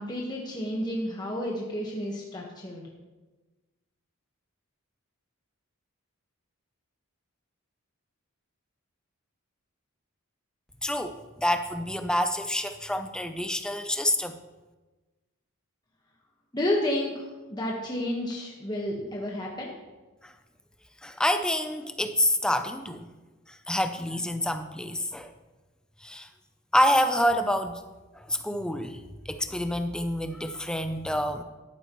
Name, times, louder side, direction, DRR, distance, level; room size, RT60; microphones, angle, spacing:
voice 1, 0.0-2.8 16.5-19.7, left 1 dB, 20° left, -2 dB, 1.3 m, -31 dB
voice 2, 10.8-14.4 20.2-20.3 21.0-23.1 23.5-25.3 26.0-26.3 26.7-27.8 28.1-29.0 29.3-31.4, left 1 dB, 5° left, 8 dB, 0.5 m, -27 dB
13.0 x 11.5 x 3.1 m, 1.2 s
head